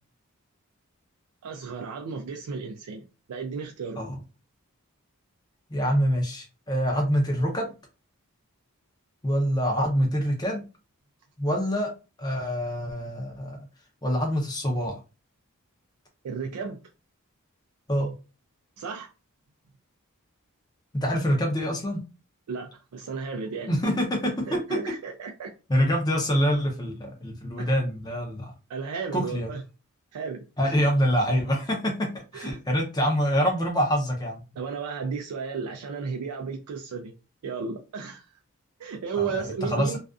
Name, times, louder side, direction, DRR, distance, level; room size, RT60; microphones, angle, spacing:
voice 1, 1.4-3.0 3.3-4.0 16.2-16.8 18.8-19.1 22.5-23.7 24.4-25.5 27.6-27.7 28.7-29.6 30.1-30.8 32.3-32.6 34.6-37.1 37.4-38.3 38.8-40.0, right 5 dB, 90° right, 0.4 m, -34 dB
voice 2, 5.7-7.7 9.2-10.6 11.4-11.9 12.2-13.6 14.0-15.0 17.9-18.1 20.9-22.0 23.7-24.6 25.7-28.5 29.1-29.5 30.6-34.4 39.2-40.0, equal, 20° left, 0.6 m, -25 dB
2.4 x 2.3 x 2.3 m
head